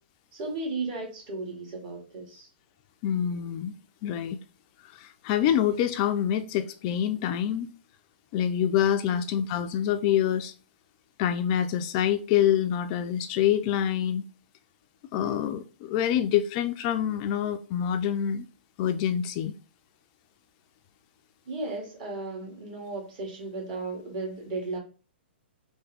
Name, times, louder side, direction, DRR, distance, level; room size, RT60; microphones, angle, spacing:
voice 1, 0.3-2.5 9.1-9.2 21.5-24.8, right 3 dB, 45° right, 1.8 m, -35 dB
voice 2, 3.0-3.7 4.0-4.4 4.9-7.7 8.3-10.5 11.2-14.2 15.1-18.5 18.8-19.5, left 10 dB, 35° left, 0.3 m, -26 dB
3.4 x 2.6 x 3.4 m
hypercardioid pair, 125°, 6 cm